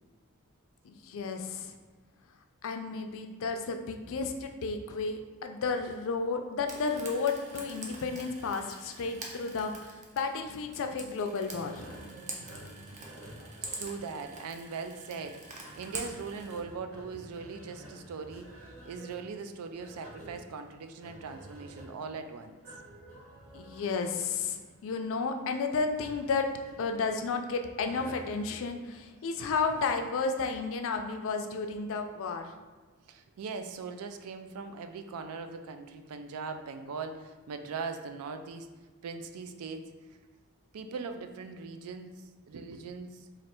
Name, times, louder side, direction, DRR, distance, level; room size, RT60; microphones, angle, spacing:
voice 1, 0.8-1.7 2.6-11.8 23.5-26.5 26.8-32.5, left 4 dB, 65° left, 5 dB, 0.4 m, -32 dB
Frying (food), 6.6-16.6, right 3 dB, 35° right, 0.6 m, -45 dB
sound 1, 11.5-30.2, right 1 dB, 65° right, 1.0 m, -51 dB
voice 2, 13.6-15.4 15.7-18.5 18.8-22.5 33.1-38.7 39.0-39.9 40.7-42.1 42.5-43.3, right 5 dB, 85° right, 7 dB, 0.4 m, -40 dB
3.2 x 2.5 x 4.3 m, 1.3 s
head